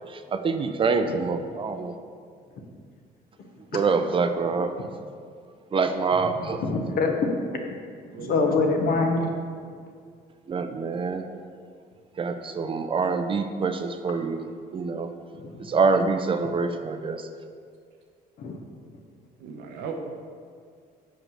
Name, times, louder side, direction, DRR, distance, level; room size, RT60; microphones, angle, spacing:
voice 1, 0.1-1.9 3.7-4.7 5.7-6.6 10.5-11.2 12.2-14.4 14.7-15.1 15.6-17.3, right 4 dB, 30° right, 0.5 m, -25 dB
voice 2, 6.6-7.1 8.2-9.3 15.3-15.8 18.4-18.6, left 3 dB, 60° left, 1.1 m, -25 dB
voice 3, 8.1-8.5 19.4-19.9, right 5 dB, 85° right, 1.0 m, -36 dB
5.8 x 5.1 x 6.4 m
cardioid pair, 110°, 17 cm